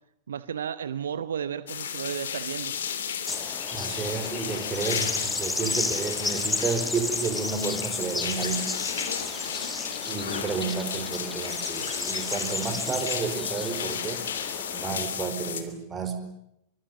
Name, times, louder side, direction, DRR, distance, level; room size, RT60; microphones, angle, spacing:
voice 1, 0.3-2.8, right 8 dB, 65° right, 15 dB, 0.9 m, -33 dB
sound 1, 1.7-15.6, left 8 dB, 65° left, 3.0 m, -33 dB
sound 2, 3.3-15.0, left 3 dB, 10° left, 1.7 m, -33 dB
voice 2, 3.7-8.7 10.1-14.2 14.7-16.2, right 5 dB, 20° right, 8 dB, 4.8 m, -31 dB
24.5 x 23.5 x 9.0 m, 0.78 s
figure-of-eight pair, 90°, 0 cm